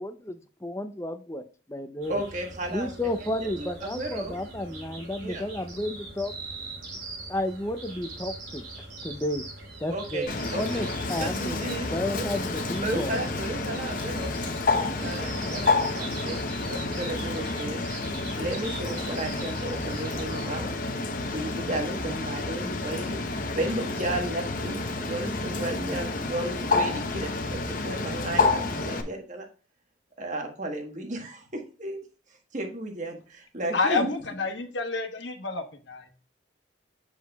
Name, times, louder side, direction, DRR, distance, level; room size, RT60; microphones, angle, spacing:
voice 1, 0.0-1.4 1.7-2.2 2.7-6.4 7.3-8.6 9.0-9.4 9.8-11.6 11.9-13.2, left 1 dB, 15° left, 9 dB, 0.5 m, -32 dB
sound 1, 2.0-20.5, right 2 dB, 85° right, 3.3 m, -42 dB
voice 2, 2.1-2.9 3.2-3.3 3.6-4.4 5.2-5.4 8.9-9.0 9.9-10.9 11.2-12.3 12.8-14.3 15.0-16.4 16.6-17.9 18.4-20.7 21.0-29.5 30.2-32.0 32.5-34.1, right 1 dB, 40° right, 3 dB, 1.4 m, -34 dB
Bird, 10.3-29.0, left 3 dB, 45° left, 0.8 m, -29 dB
voice 3, 33.7-36.1, left 3 dB, 70° left, 4 dB, 1.2 m, -29 dB
7.2 x 6.3 x 2.3 m, 0.37 s
head